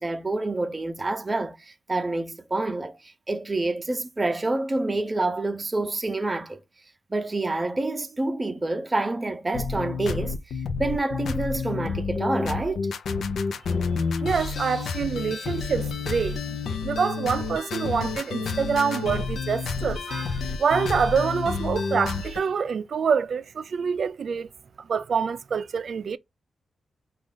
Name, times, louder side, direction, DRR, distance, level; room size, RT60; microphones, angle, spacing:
voice 1, 0.0-6.6 7.1-10.3 10.8-12.9 14.1-14.3, right 2 dB, 20° right, 0.7 m, -28 dB
sound 1, 9.5-22.4, left 4 dB, 75° left, 0.5 m, -29 dB
voice 2, 14.2-16.6 16.8-24.5 24.8-26.2, right 6 dB, 60° right, 0.4 m, -26 dB
5.1 x 2.4 x 3.7 m
wide cardioid pair, 120°, 0 cm